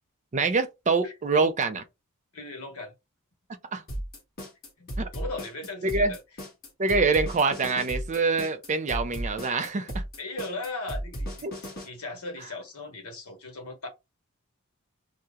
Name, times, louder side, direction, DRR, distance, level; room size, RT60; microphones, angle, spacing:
voice 1, 0.3-1.8 3.7-3.8 5.0-5.1 5.8-6.1 6.8-10.0 11.4-11.5, right 4 dB, 35° right, 0.5 m, -25 dB
voice 2, 1.0-1.5 2.3-2.9 4.8-6.2 10.2-13.9, left 2 dB, 75° left, 1.2 m, -38 dB
sound 1, 3.9-11.9, equal, 45° left, 1.3 m, -34 dB
2.8 x 2.1 x 3.6 m
head